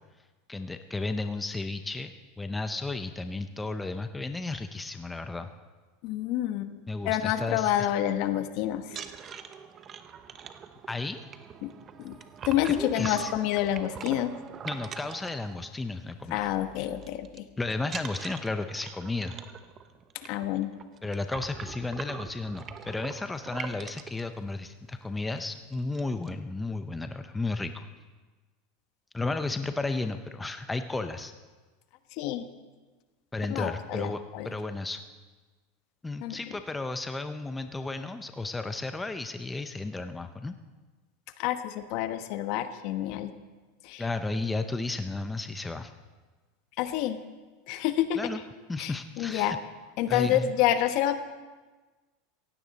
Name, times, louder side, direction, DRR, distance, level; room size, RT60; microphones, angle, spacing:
voice 1, 0.5-2.1 2.4-5.5 6.9-7.7 10.9-11.2 12.7-13.3 14.6-16.5 17.6-19.3 21.0-27.9 29.1-31.3 33.3-35.0 36.0-40.5 44.0-45.9 48.2-48.4 48.7-49.6 50.1-50.5, left 3 dB, 10° left, 8 dB, 0.7 m, -33 dB
voice 2, 6.0-6.7 7.0-9.0 11.6-11.7 12.0-12.2 12.5-14.4 16.3-17.4 20.2-20.7 32.2-32.5 33.5-34.5 36.2-36.4 41.4-43.3 43.8-44.0 46.8-47.2 47.7-48.2 48.8-49.5 50.0-51.2, left 12 dB, 55° left, 9 dB, 1.1 m, -28 dB
sound 1, 8.8-16.0 16.3-16.6 16.8-17.4 17.8-24.2 24.9-25.0 25.3-25.5 25.7-26.3, right 7 dB, 30° right, 0.9 m, -43 dB
17.0 x 16.0 x 4.1 m, 1.3 s
supercardioid pair, 130°, 0 cm